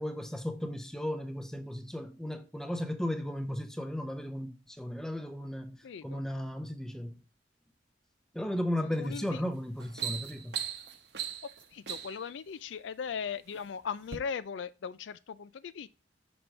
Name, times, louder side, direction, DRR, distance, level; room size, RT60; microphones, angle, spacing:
voice 1, 0.0-7.2 8.3-10.6, left 1 dB, 5° left, 0.7 m, -35 dB
voice 2, 5.8-6.2 8.8-9.4 11.2-15.9, left 6 dB, 75° left, 0.4 m, -39 dB
sound 1, 9.0-9.3 9.7-12.3 13.1-13.6 14.0-14.2, right 9 dB, 60° right, 0.9 m, -38 dB
6.0 x 5.4 x 3.3 m
head